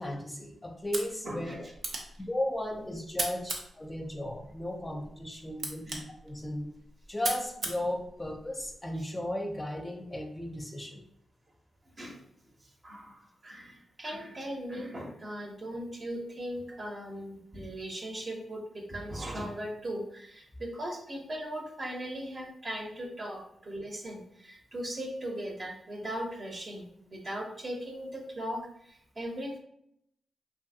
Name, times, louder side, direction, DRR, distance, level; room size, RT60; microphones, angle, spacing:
voice 1, 0.0-1.5 2.2-6.0 6.2-6.7 7.1-11.0 16.7-16.8, left 1 dB, 20° left, 3 dB, 0.5 m, -35 dB
sound 1, 0.8-8.8, right 2 dB, 75° right, 0.6 m, -40 dB
voice 2, 1.2-1.7 5.9-6.0 8.9-9.0 12.0-12.2 12.6-29.6, equal, 45° right, 1 dB, 0.7 m, -39 dB
2.6 x 2.6 x 2.6 m, 0.73 s
supercardioid pair, 50°, 0 cm